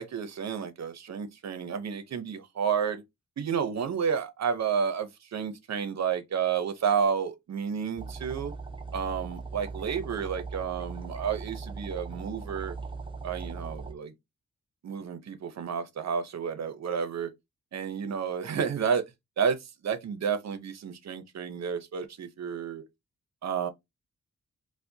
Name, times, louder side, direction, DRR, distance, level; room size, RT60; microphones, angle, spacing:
voice 1, 0.0-3.0 3.4-8.5 8.9-12.8 13.2-14.1 14.8-17.3 17.7-19.0 19.4-22.9 23.4-23.7, right 7 dB, 60° right, 0.7 m, -31 dB
sound 1, 8.0-13.9, right 4 dB, 15° right, 0.4 m, -39 dB
4.8 x 2.1 x 2.7 m
wide cardioid pair, 135°, 30 cm